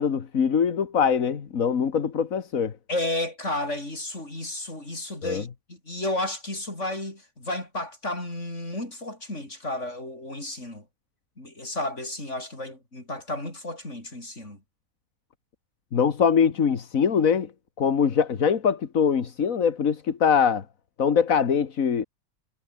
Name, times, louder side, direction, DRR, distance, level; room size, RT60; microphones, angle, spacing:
voice 1, 0.0-2.7 5.2-5.4 15.9-17.5 17.8-20.6 21.0-22.0, left 7 dB, 75° left, 1.9 m, -23 dB
voice 2, 2.9-10.8 11.4-14.6, left 1 dB, 55° left, 7.9 m, -32 dB
omnidirectional pair, 1.4 m